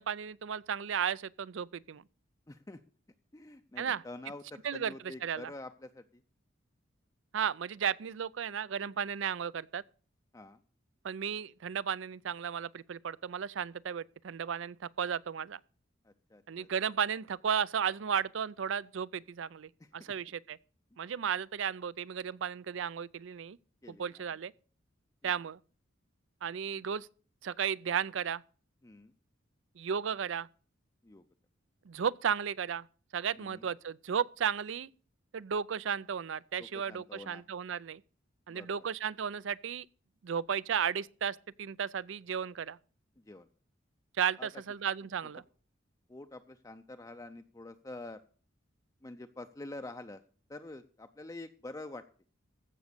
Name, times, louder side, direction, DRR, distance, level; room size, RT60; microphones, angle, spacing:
voice 1, 0.0-2.0 3.8-4.0 4.6-5.5 7.3-9.8 11.0-15.6 16.5-20.6 21.0-23.6 23.9-24.5 25.2-25.6 26.4-27.1 27.4-28.4 29.8-30.5 31.9-32.9 33.1-34.9 35.3-38.0 38.5-39.9 40.2-42.8 44.2-45.4, right 7 dB, 70° right, 0.4 m, -34 dB
voice 2, 2.5-2.8 3.3-6.2 10.3-10.6 16.0-16.7 19.8-20.2 23.8-24.2 25.2-25.4 26.5-26.7 28.8-29.1 31.0-31.2 33.4-33.6 36.6-37.4 38.5-38.7 43.3-43.5 44.4-44.5 46.1-48.2 49.0-50.2 50.5-52.0, left 2 dB, 15° left, 0.5 m, -47 dB
15.0 x 6.3 x 6.7 m
head